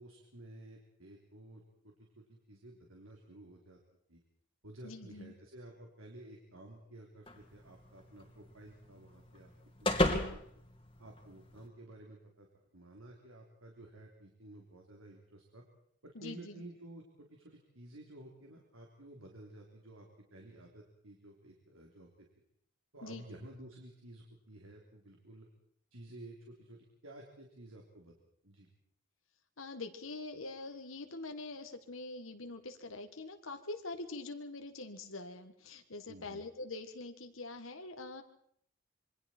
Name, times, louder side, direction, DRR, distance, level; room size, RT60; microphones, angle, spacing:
voice 1, 0.0-3.8 4.1-4.2 4.6-9.5 9.8-10.4 11.0-12.5 12.7-15.6 16.0-22.1 22.9-25.5 25.9-28.2 28.4-28.7 36.1-36.4, right 1 dB, 80° right, 0 dB, 3.5 m, -53 dB
voice 2, 4.8-5.3 10.0-10.4 16.2-16.5 23.0-23.2 29.6-38.2, left 2 dB, 75° left, 6 dB, 1.8 m, -44 dB
sound 1, 7.3-11.7, left 1 dB, 25° left, 2.4 m, -36 dB
27.0 x 23.5 x 4.5 m, 0.67 s
head